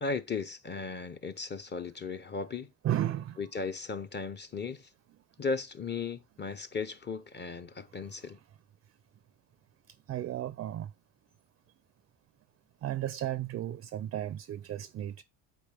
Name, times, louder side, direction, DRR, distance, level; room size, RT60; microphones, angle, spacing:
voice 1, 0.0-2.7 3.4-4.9 5.4-8.4, left 4 dB, 25° left, 0.6 m, -36 dB
voice 2, 2.8-3.4 10.1-10.9 12.8-15.2, right 12 dB, 35° right, 0.4 m, -34 dB
8.5 x 4.1 x 3.3 m
supercardioid pair, 85°, 40 cm